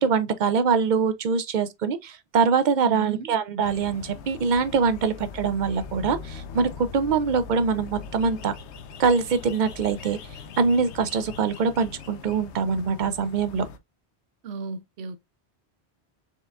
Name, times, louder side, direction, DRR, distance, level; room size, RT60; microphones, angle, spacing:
voice 1, 0.0-8.5 9.0-10.2 10.6-13.7, right 5 dB, 55° right, 0.5 m, -23 dB
voice 2, 2.8-3.3 14.4-15.2, right 6 dB, 75° right, 0.9 m, -34 dB
sound 1, 3.6-13.8, left 5 dB, 90° left, 0.9 m, -41 dB
4.5 x 3.4 x 2.3 m
omnidirectional pair, 1.1 m